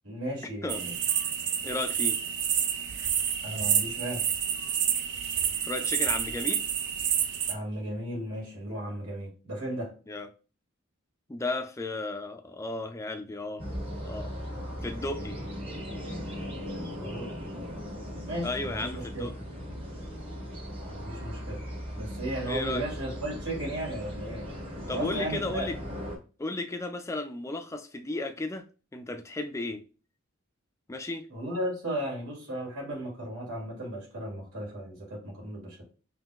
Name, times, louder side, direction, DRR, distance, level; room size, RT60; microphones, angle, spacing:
voice 1, 0.0-0.9 3.4-4.2 7.5-9.9 16.7-17.7 18.3-19.2 20.8-21.6 21.9-24.5 24.9-25.7 31.3-35.8, right 1 dB, 80° right, 2.2 m, -35 dB
sound 1, 0.7-7.5, right 9 dB, 55° right, 0.4 m, -29 dB
voice 2, 1.6-2.2 5.6-6.7 10.1-10.3 11.3-13.7 14.0-14.3 14.8-15.4 18.4-19.3 22.5-22.8 24.9-25.8 26.4-28.7 28.9-29.8 30.9-31.3, left 2 dB, 15° left, 0.3 m, -34 dB
sound 2, 13.6-26.2, equal, 25° right, 1.0 m, -38 dB
5.5 x 2.8 x 2.3 m
head